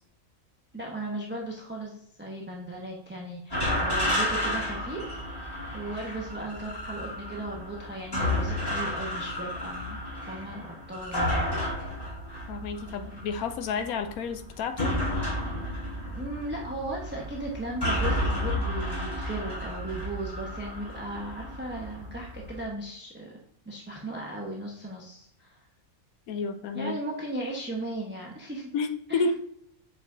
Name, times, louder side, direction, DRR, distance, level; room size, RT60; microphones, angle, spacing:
voice 1, 0.7-5.2 5.7-10.0 10.3-11.5 15.6-23.4 23.7-25.6 26.7-28.7 29.1-29.3, right 1 dB, 10° right, -2 dB, 0.9 m, -37 dB
sound 1, 3.5-22.6, left 1 dB, 15° left, 2.4 m, -32 dB
voice 2, 12.5-15.0 26.3-26.9 28.7-29.3, left 4 dB, 90° left, 8 dB, 1.1 m, -30 dB
7.1 x 5.0 x 2.6 m, 0.66 s
omnidirectional pair, 1.5 m